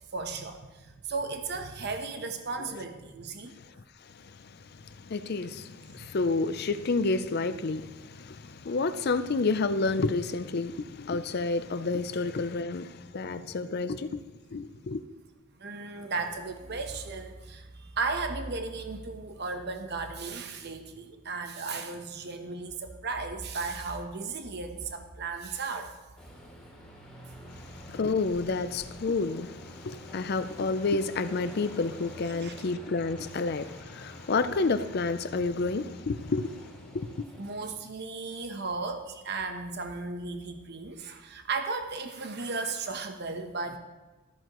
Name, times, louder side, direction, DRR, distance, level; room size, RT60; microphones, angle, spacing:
voice 1, 0.1-3.5 7.7-7.8 13.3-13.5 15.6-26.0 32.4-32.5 37.4-43.8, right 4 dB, 50° right, 0.9 m, -35 dB
voice 2, 4.1-14.2 14.5-15.0 27.6-37.3, left 3 dB, 50° left, 0.5 m, -30 dB
Aircraft, 26.2-37.7, equal, 5° left, 2.8 m, -48 dB
14.0 x 13.5 x 3.0 m
head